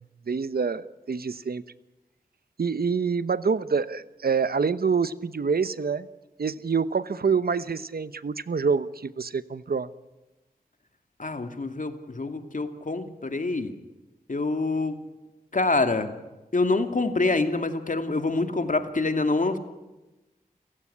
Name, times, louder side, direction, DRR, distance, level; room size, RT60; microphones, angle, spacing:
voice 1, 0.0-1.6 2.6-6.1 6.4-9.9, right 5 dB, 80° right, 15 dB, 1.0 m, -26 dB
voice 2, 11.2-13.7 14.3-14.9 15.5-16.1 16.5-19.6, left 3 dB, 55° left, 7 dB, 2.5 m, -26 dB
29.5 x 16.0 x 9.9 m, 1.1 s
wide cardioid pair, 70°, 16 cm